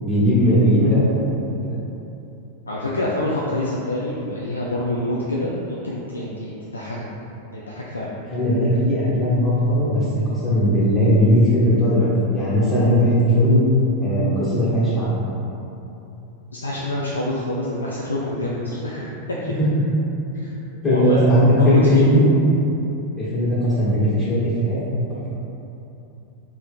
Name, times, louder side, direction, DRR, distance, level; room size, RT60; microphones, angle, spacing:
voice 1, 0.0-1.3 1.6-1.8 8.3-13.6 14.0-15.1 19.6-19.7 20.3-20.4 20.8-22.3 23.2-24.8, equal, 20° left, -12 dB, 1.4 m, -18 dB
voice 2, 2.7-7.1 7.5-8.1 16.5-19.6 20.4-20.5 20.8-21.2 21.6-22.1, left 1 dB, 75° left, -4 dB, 0.3 m, -26 dB
3.3 x 2.8 x 3.5 m, 2.9 s
figure-of-eight pair, 90°, 0 cm